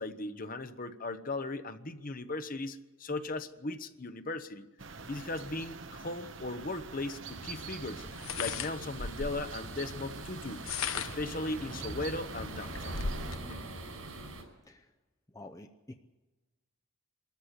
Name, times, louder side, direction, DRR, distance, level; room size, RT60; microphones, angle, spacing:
voice 1, 0.0-4.7 5.1-10.7 10.9-13.0 13.5-13.6, left 2 dB, 40° left, 10 dB, 1.0 m, -38 dB
sound 1, 4.8-13.4, right 4 dB, 60° right, 1.1 m, -46 dB
sound 2, 6.8-6.9 8.1-9.5 10.4-11.3 11.9-12.0 12.4-13.4, left 5 dB, 80° left, 1.1 m, -37 dB
sound 3, 7.3-14.4, right 1 dB, 90° right, 5.6 m, -44 dB
voice 2, 15.3-15.9, left 2 dB, 15° left, 6 dB, 0.7 m, -48 dB
25.0 x 14.0 x 8.3 m, 1.2 s
head